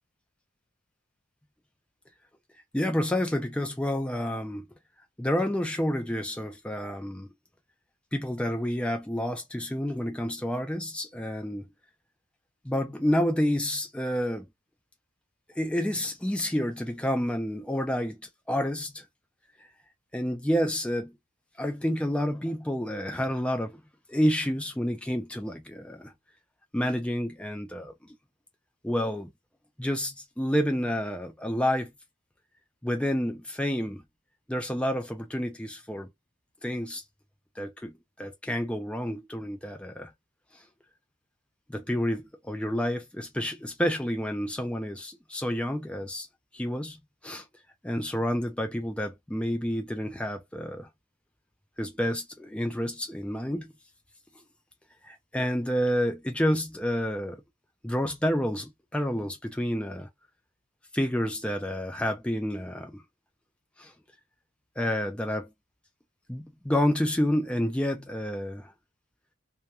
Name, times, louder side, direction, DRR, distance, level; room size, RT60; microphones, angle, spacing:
voice 1, 2.7-4.7 5.2-7.3 8.1-11.7 12.6-14.5 15.6-18.2 18.5-19.0 20.1-21.1 21.6-23.8 24.1-26.1 26.7-28.1 28.8-29.3 29.8-31.9 32.8-34.0 34.5-36.1 36.6-37.0 37.6-37.9 38.2-40.1 41.7-46.3 46.5-47.4 47.8-50.9 51.8-53.7 55.0-57.4 57.8-60.1 60.9-63.0 63.8-63.9 64.8-65.5 66.3-68.7, equal, 5° left, 0.4 m, -29 dB
2.2 x 2.2 x 2.8 m
head